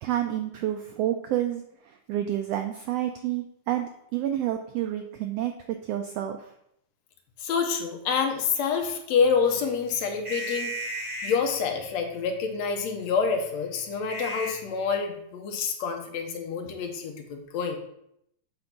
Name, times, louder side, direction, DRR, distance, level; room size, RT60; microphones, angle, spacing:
voice 1, 0.0-6.5, right 12 dB, 85° right, 6 dB, 1.4 m, -29 dB
voice 2, 7.4-10.7 11.2-17.8, left 6 dB, 70° left, 4 dB, 2.1 m, -27 dB
sound 1, 9.2-14.9, right 1 dB, 15° right, 2.7 m, -38 dB
7.9 x 3.8 x 5.8 m, 0.76 s
omnidirectional pair, 3.4 m